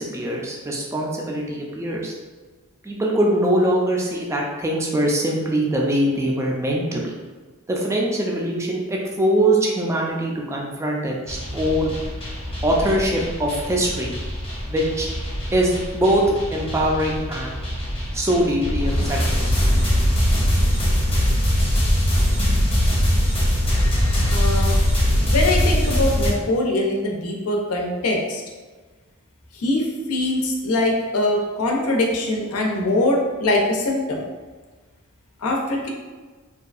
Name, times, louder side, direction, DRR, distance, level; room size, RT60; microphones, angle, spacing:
voice 1, 0.0-2.1 2.8-7.1 7.7-11.9 12.6-14.1 14.7-15.1 15.5-17.6 18.1-19.5 22.4-22.7, right 1 dB, 15° right, -2 dB, 0.3 m, -22 dB
sound 1, 11.3-26.3, equal, 25° left, 0.7 m, -22 dB
voice 2, 24.3-24.8 25.1-28.4 29.5-34.2 35.4-35.9, left 2 dB, 85° left, 0 dB, 0.5 m, -22 dB
2.7 x 2.3 x 2.4 m, 1.4 s
head